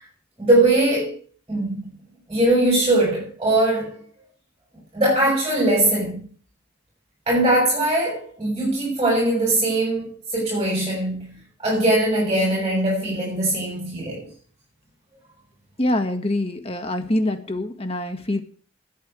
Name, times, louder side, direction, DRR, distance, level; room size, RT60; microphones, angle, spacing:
voice 1, 0.4-1.1 1.5-1.8 2.3-4.0 4.9-6.2 7.3-11.4 11.6-14.3, right 1 dB, 25° right, 6.5 m, -21 dB
voice 2, 15.8-18.4, left 1 dB, 30° left, 1.6 m, -24 dB
10.5 x 8.7 x 8.0 m
head